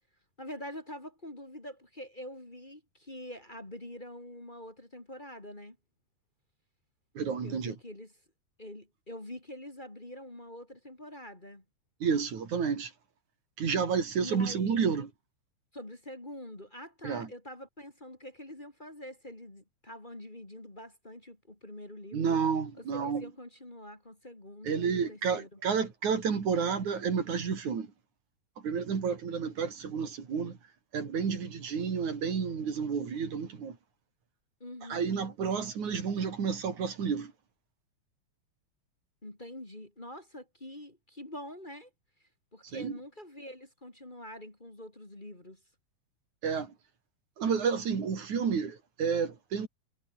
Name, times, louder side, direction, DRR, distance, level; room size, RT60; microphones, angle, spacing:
voice 1, 0.4-5.8 7.4-8.1 8.6-11.6 14.2-14.9 15.7-22.3 22.8-25.5 34.6-35.2 39.2-41.9 42.5-45.6, left 1 dB, 15° left, 3.0 m, -45 dB
voice 2, 7.1-7.8 12.0-12.9 13.6-15.1 17.0-17.3 22.1-23.3 24.6-27.9 28.6-33.8 34.8-37.3 42.6-43.0 46.4-46.8 47.4-49.7, right 6 dB, 90° right, 5.0 m, -31 dB
omnidirectional pair, 3.3 m